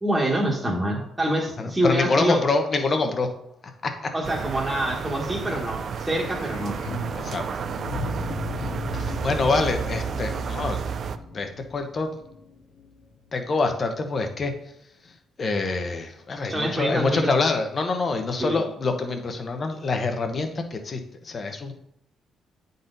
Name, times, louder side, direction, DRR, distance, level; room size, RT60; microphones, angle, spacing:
voice 1, 0.0-2.4 4.1-6.8 16.5-17.3 18.4-18.6, right 1 dB, 15° right, -3 dB, 1.5 m, -26 dB
voice 2, 1.6-3.3 3.8-4.1 7.2-7.4 8.9-10.8 11.3-12.1 13.3-14.5 15.4-21.7, left 3 dB, 40° left, 5 dB, 1.0 m, -26 dB
sound 1, 4.2-11.2, right 6 dB, 55° right, 0.4 m, -31 dB
sound 2, 5.3-13.3 13.5-13.6, left 2 dB, 75° left, 1.3 m, -36 dB
8.5 x 4.1 x 4.0 m, 0.76 s
cardioid pair, 90°, 0 cm